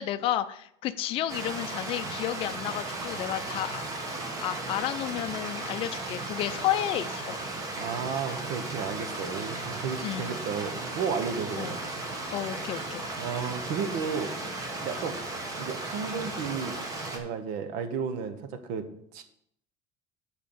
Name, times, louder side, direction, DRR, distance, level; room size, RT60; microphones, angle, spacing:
voice 1, 0.0-3.8 4.4-7.4 10.0-10.3 11.6-11.8 12.3-13.1, left 12 dB, 40° left, 9 dB, 0.5 m, -31 dB
Stream, 1.3-17.2, right 2 dB, 25° right, 1.1 m, -35 dB
voice 2, 7.8-11.8 13.2-14.3 14.8-15.1 15.6-16.7 17.1-18.9 19.1-19.2, right 6 dB, 70° right, 9 dB, 1.0 m, -33 dB
7.5 x 4.6 x 6.9 m, 0.70 s
cardioid pair, 170°, 15 cm